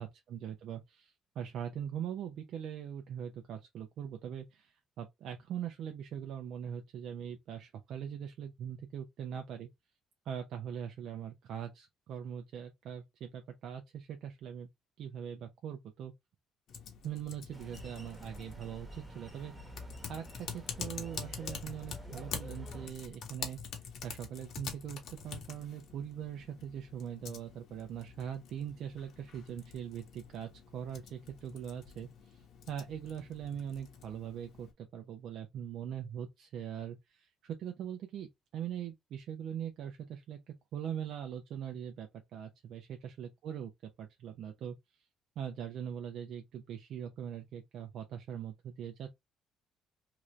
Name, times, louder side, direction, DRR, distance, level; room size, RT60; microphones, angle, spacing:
voice 1, 0.0-9.7 10.2-14.7 15.0-16.1 17.0-19.5 20.1-23.6 24.0-32.4 32.7-44.8 45.4-49.1, right 9 dB, 70° right, 0.6 m, -42 dB
Typing, 16.7-34.7, left 6 dB, 65° left, 0.9 m, -47 dB
sound 1, 17.5-22.9, equal, 10° right, 1.2 m, -48 dB
2.9 x 2.5 x 3.1 m
cardioid pair, 100°, 0 cm